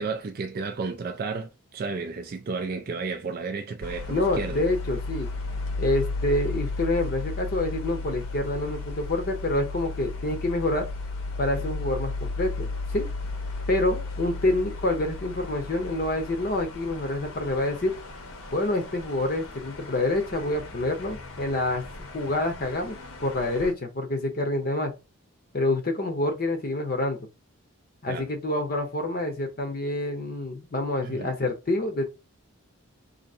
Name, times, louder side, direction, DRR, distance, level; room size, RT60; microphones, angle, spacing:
voice 1, 0.0-4.6 28.1-28.3 31.0-31.3, right 4 dB, 40° right, 0.3 m, -32 dB
sound 1, 3.8-23.7, left 3 dB, 85° left, 0.8 m, -35 dB
voice 2, 4.1-5.3 5.8-10.9 11.4-13.1 13.7-17.9 18.5-21.8 22.1-24.9 25.5-27.2 28.0-32.0, left 2 dB, 45° left, 0.6 m, -27 dB
2.7 x 2.7 x 4.2 m
head